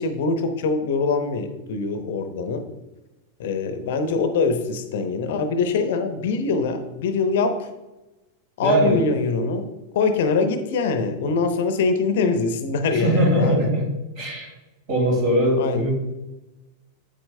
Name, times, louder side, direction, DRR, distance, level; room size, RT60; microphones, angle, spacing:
voice 1, 0.0-2.6 3.4-7.7 8.6-9.7 9.9-13.7 15.6-15.9, left 4 dB, 55° left, 9 dB, 0.7 m, -23 dB
voice 2, 8.6-9.0 12.9-13.8 14.2-14.5 14.9-15.9, right 1 dB, 45° right, 0 dB, 2.7 m, -20 dB
8.8 x 8.6 x 2.2 m, 1.0 s
figure-of-eight pair, 90°, 0 cm